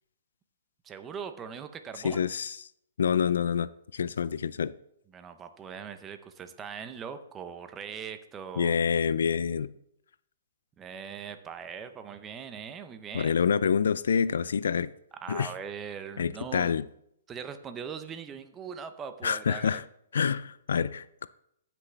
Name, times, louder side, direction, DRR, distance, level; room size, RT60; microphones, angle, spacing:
voice 1, 0.8-2.2 5.1-8.7 10.8-13.3 15.2-16.7 17.3-19.8, right 7 dB, 15° right, 0.7 m, -40 dB
voice 2, 2.0-2.6 3.0-4.7 8.6-9.7 13.1-14.9 15.3-15.5 16.2-16.9 19.2-19.8 20.1-21.3, left 7 dB, 80° left, 0.4 m, -27 dB
15.5 x 6.0 x 3.4 m
hypercardioid pair, 150°, 0 cm